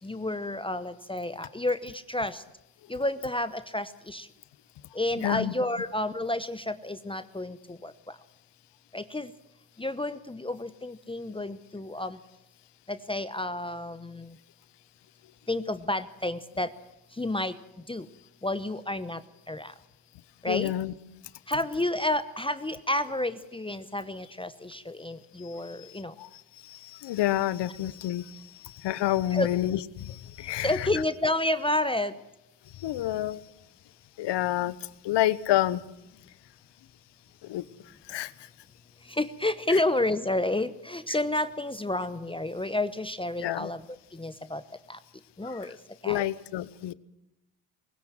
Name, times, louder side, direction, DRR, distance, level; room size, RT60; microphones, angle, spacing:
voice 1, 0.0-2.4 2.9-4.3 4.9-7.9 8.9-9.3 9.8-12.2 12.9-14.3 15.5-16.7 17.2-17.5 17.9-18.0 18.4-19.2 19.5-19.7 20.4-20.7 21.5-26.1 29.3-29.5 30.6-32.1 39.1-43.8 44.1-44.6 44.9-45.0 45.4-45.8 46.0-46.3, left 1 dB, 10° left, 12 dB, 0.9 m, -30 dB
voice 2, 5.2-5.5 20.5-20.9 25.4-30.9 32.7-33.4 34.2-34.8 35.0-35.8 37.4-37.6 38.1-38.5 39.7-39.8 43.4-43.7 45.4-45.7 46.0-46.9, left 13 dB, 65° left, 17 dB, 1.1 m, -29 dB
20.5 x 17.5 x 7.8 m, 0.85 s
supercardioid pair, 75°, 46 cm